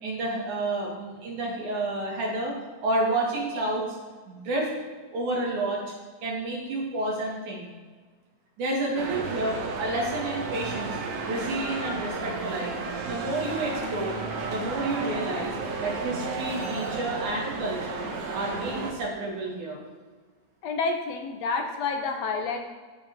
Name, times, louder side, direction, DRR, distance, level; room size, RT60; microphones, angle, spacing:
voice 1, 0.0-2.5 2.8-3.8 4.3-4.7 5.1-5.9 6.2-7.7 8.6-11.0 11.2-12.7 13.1-14.2 14.4-18.1 18.3-19.8, right 2 dB, 80° right, -3 dB, 3.8 m, -30 dB
sound 1, 9.0-18.9, right 4 dB, 65° right, 2.0 m, -33 dB
voice 2, 20.6-22.6, left 4 dB, 70° left, 4 dB, 1.9 m, -29 dB
16.0 x 5.7 x 3.7 m, 1.4 s
omnidirectional pair, 3.4 m